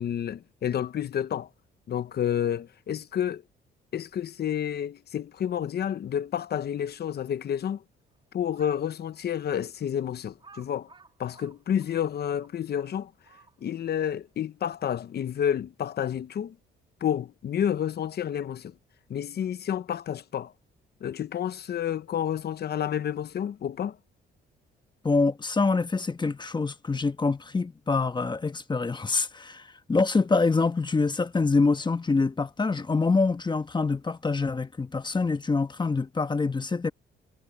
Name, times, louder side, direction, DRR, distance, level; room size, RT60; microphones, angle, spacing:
voice 1, 0.0-1.5 1.9-3.4 3.9-7.8 8.3-10.9 11.2-13.1 13.6-16.6 17.0-18.7 19.1-20.5 21.0-24.0, left 9 dB, 55° left, 1.0 m, -30 dB
Crow, 8.4-8.9 9.5-9.6 10.4-13.8, right 4 dB, 25° right, 3.1 m, -54 dB
voice 2, 25.0-36.9, left 3 dB, 20° left, 1.2 m, -25 dB
cardioid pair, 90°, 20 cm